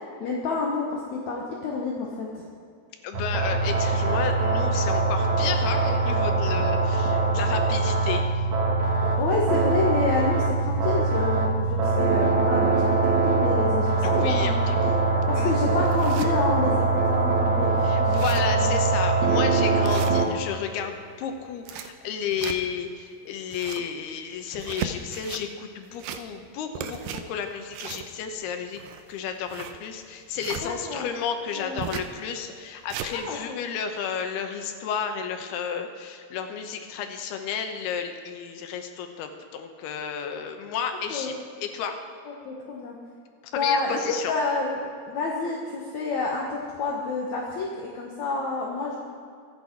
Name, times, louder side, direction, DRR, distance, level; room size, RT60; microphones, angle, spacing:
voice 1, 0.2-2.4 9.1-14.6 15.1-18.8 30.6-31.0 31.6-31.9 33.1-33.6 41.1-41.4 42.5-42.9 43.6-44.0 44.3-44.8 45.1-49.0, left 3 dB, 55° left, -3 dB, 2.3 m, -29 dB
voice 2, 3.0-8.2 14.0-14.8 15.4-15.5 17.8-28.8 29.1-41.3 41.6-42.0 43.4-44.4, left 7 dB, 80° left, 6 dB, 3.1 m, -32 dB
sound 1, 3.1-20.2, right 3 dB, 65° right, 2.8 m, -23 dB
sound 2, 15.0-15.1 15.6-16.3 16.9-17.0 17.3-17.4 17.7-17.8 18.0-18.6 19.0-19.2 19.8-20.6 21.4-22.9 23.3-23.9 24.5-25.4 25.9-26.5 26.8-30.7 31.8-32.1 32.6-33.1, right 8 dB, 85° right, 2.7 m, -36 dB
24.5 x 8.4 x 4.7 m, 2.3 s
omnidirectional pair, 4.6 m